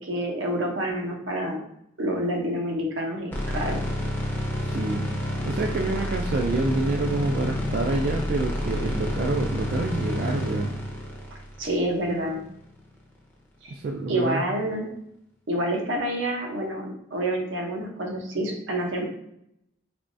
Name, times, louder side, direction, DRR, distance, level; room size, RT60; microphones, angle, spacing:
voice 1, 0.0-1.6 2.0-3.8 11.6-12.4 13.6-13.7 14.1-14.9 15.5-19.1, right 1 dB, 75° right, 1 dB, 0.8 m, -28 dB
sound 1, 3.3-12.5, left 1 dB, 10° left, 0.5 m, -29 dB
voice 2, 4.3-5.1 5.4-10.7 13.7-14.4, right 2 dB, 50° right, 0 dB, 0.3 m, -27 dB
3.4 x 3.0 x 2.6 m, 0.76 s
head